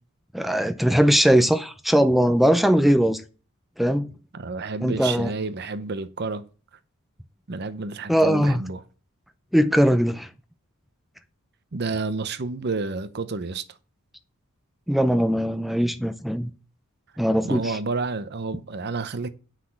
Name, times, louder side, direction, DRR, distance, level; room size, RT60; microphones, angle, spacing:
voice 1, 0.3-3.2 3.8-4.1 4.8-5.3 8.1-8.6 9.5-10.3 14.9-16.5 17.2-17.7, equal, ahead, 0.5 m, -20 dB
voice 2, 4.3-6.4 7.5-8.8 11.7-13.8 17.4-19.3, right 3 dB, 50° right, 0.7 m, -30 dB
8.3 x 5.9 x 7.5 m
head